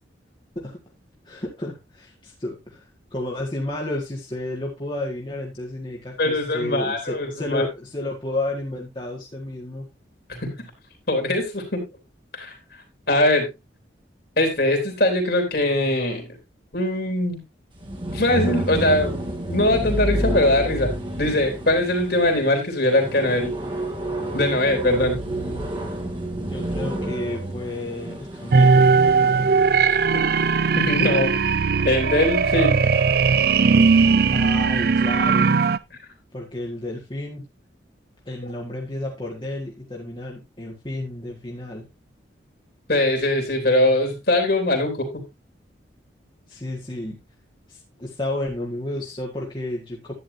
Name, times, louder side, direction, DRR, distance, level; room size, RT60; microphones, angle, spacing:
voice 1, 1.3-2.8 3.1-9.9 26.4-28.9 34.3-35.6 36.3-37.5 38.3-41.9 46.5-47.2 47.7-50.1, left 1 dB, 25° left, -3 dB, 1.9 m, -31 dB
voice 2, 6.2-7.6 10.3-10.5 11.1-11.8 12.3-12.5 13.1-13.5 14.4-16.3 16.7-17.4 18.1-19.2 19.5-23.6 24.3-25.2 30.7-31.3 31.8-32.9 42.9-45.1, left 1 dB, 55° left, 4 dB, 3.5 m, -21 dB
sound 1, 17.8-29.8, right 1 dB, 25° right, 2.2 m, -29 dB
sound 2, 28.5-35.8, right 5 dB, 55° right, 0.5 m, -18 dB
11.5 x 9.8 x 2.7 m, 0.23 s
head